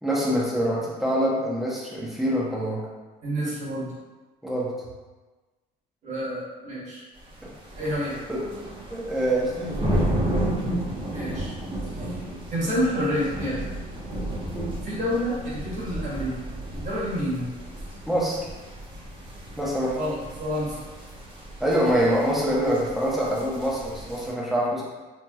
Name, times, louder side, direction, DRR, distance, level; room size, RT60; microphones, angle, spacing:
voice 1, 0.0-2.8 4.4-4.7 8.3-9.8 18.1-18.4 19.6-20.0 21.6-24.8, equal, ahead, -6 dB, 0.7 m, -25 dB
voice 2, 3.2-3.9 6.0-7.0 7.8-8.2 11.1-11.5 11.8-12.2 12.5-13.6 14.8-16.4 16.7-17.5 19.9-20.8, equal, 45° right, -7 dB, 1.2 m, -28 dB
sound 1, 7.2-24.3, right 1 dB, 30° right, 0.9 m, -33 dB
2.9 x 2.8 x 2.3 m, 1.2 s
cardioid pair, 110°, 17 cm